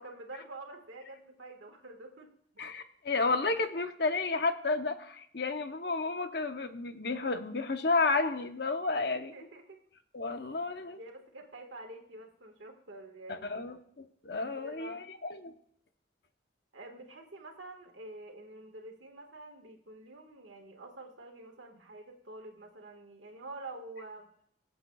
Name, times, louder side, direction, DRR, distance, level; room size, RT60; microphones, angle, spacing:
voice 1, 0.0-2.3 9.0-9.8 11.0-13.7 14.6-15.0 16.7-24.3, right 2 dB, 85° right, 4 dB, 1.7 m, -47 dB
voice 2, 2.6-9.3 10.1-11.0 13.3-15.0 15.3-15.5, left 3 dB, 55° left, 8 dB, 0.8 m, -31 dB
23.0 x 7.9 x 2.3 m, 0.68 s
head